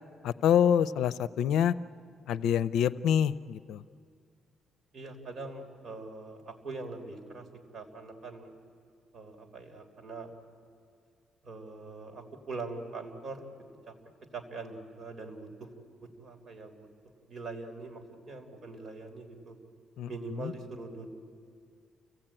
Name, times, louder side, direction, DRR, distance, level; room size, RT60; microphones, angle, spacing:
voice 1, 0.2-1.7 2.3-3.8 20.0-20.5, left 9 dB, 85° left, 16 dB, 0.5 m, -26 dB
voice 2, 4.9-7.5 7.7-8.5 9.1-10.3 11.4-13.4 13.9-14.0 14.3-15.7 16.2-16.9 17.3-19.6 20.1-21.1, right 3 dB, 45° right, 4 dB, 3.7 m, -42 dB
30.0 x 17.0 x 8.9 m, 2.3 s
cardioid pair, 90°, 0 cm